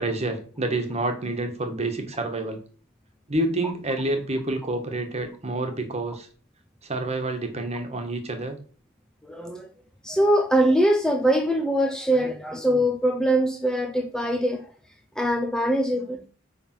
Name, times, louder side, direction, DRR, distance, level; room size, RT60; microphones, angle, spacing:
voice 1, 0.0-2.6 3.3-6.3 6.8-8.6, right 2 dB, 30° right, 1.5 m, -28 dB
voice 2, 9.2-9.7 10.0-14.7 15.2-16.2, right 1 dB, 5° left, 0.6 m, -22 dB
8.9 x 3.6 x 6.0 m
head